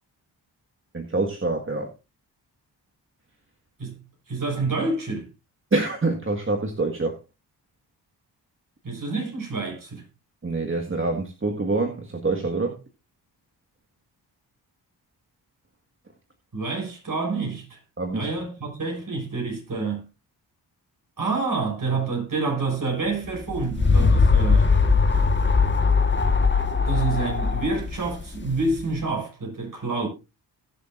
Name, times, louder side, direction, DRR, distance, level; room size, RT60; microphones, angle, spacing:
voice 1, 0.9-1.9 5.7-7.2 10.4-12.8 18.0-18.3, right 3 dB, 30° right, 1.8 m, -26 dB
voice 2, 3.8-5.3 8.8-10.0 16.5-17.8 18.1-20.0 21.2-24.7 26.8-30.1, right 3 dB, 45° right, 6.3 m, -28 dB
sound 1, 23.3-28.9, left 4 dB, 25° left, 1.6 m, -20 dB
20.0 x 6.9 x 2.6 m
cardioid pair, 55°, 43 cm